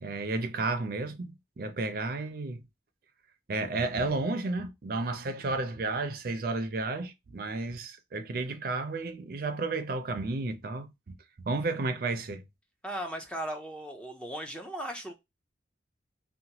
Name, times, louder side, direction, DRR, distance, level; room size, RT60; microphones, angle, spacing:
voice 1, 0.0-2.6 3.5-11.1 11.5-12.4, right 3 dB, 50° right, 0.4 m, -32 dB
voice 2, 12.8-15.1, right 1 dB, 5° left, 0.5 m, -37 dB
2.9 x 2.2 x 2.7 m
head